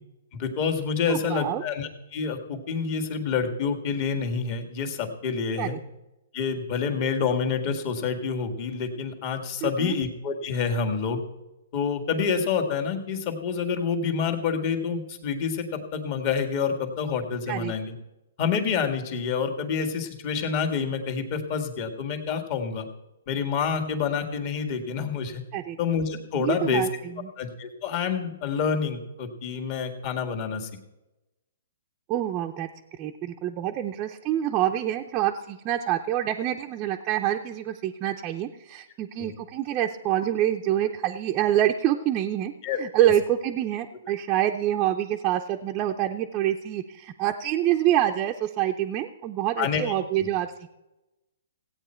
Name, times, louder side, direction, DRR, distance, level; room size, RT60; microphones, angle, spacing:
voice 1, 0.3-5.8 6.3-11.2 11.7-17.9 18.4-22.9 23.3-25.4 25.8-26.9 27.4-30.7 39.2-39.3 42.6-42.8 49.6-49.9 50.2-50.3, left 6 dB, 40° left, 4 dB, 1.8 m, -28 dB
voice 2, 1.1-1.6 5.6-5.8 9.6-10.0 17.5-17.7 25.5-25.8 26.4-27.3 32.1-32.7 33.0-42.5 42.8-50.5, right 12 dB, 25° right, 2 dB, 0.6 m, -26 dB
16.0 x 8.9 x 4.4 m, 0.99 s
hypercardioid pair, 150°, 0 cm